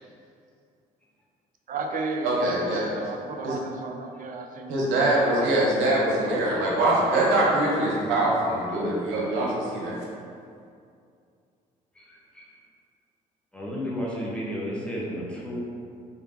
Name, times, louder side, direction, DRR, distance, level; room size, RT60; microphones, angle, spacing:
voice 1, 1.7-4.7 5.3-5.7 6.2-7.2, right 3 dB, 45° right, 4 dB, 0.4 m, -34 dB
voice 2, 2.2-2.9 3.4-3.6 4.7-10.0, right 1 dB, 75° right, -4 dB, 0.8 m, -23 dB
voice 3, 11.9-12.4 13.5-15.6, equal, 5° left, -6 dB, 0.9 m, -32 dB
3.2 x 2.6 x 2.7 m, 2.4 s
hypercardioid pair, 55°, 20 cm